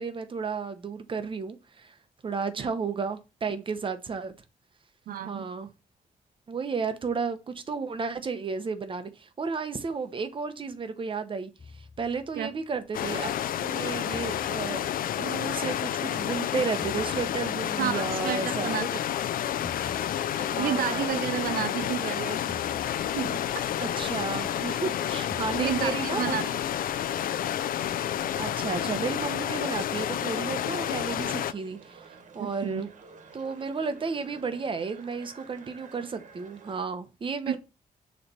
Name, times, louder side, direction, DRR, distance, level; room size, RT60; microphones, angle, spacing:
voice 1, 0.0-1.9 2.2-4.3 5.2-5.7 6.5-13.3 13.6-18.9 20.4-21.2 23.8-26.5 28.4-32.1 32.3-32.9 33.3-37.6, right 5 dB, 35° right, 0.9 m, -33 dB
voice 2, 5.1-5.5 12.4-12.5 17.8-19.0 20.4-22.4 23.1-23.4 25.5-26.4 32.4-32.8 37.5-37.6, right 9 dB, 80° right, 0.5 m, -31 dB
sound 1, 11.6-12.9 14.1-15.8 16.8-18.2 19.6-21.0 22.5-23.7 25.3-26.7, left 4 dB, 20° left, 0.5 m, -47 dB
sound 2, 12.9-31.5, left 11 dB, 75° left, 0.4 m, -30 dB
sound 3, 21.8-36.8, right 5 dB, 60° right, 1.4 m, -52 dB
7.0 x 3.3 x 5.5 m
wide cardioid pair, 130°, 15 cm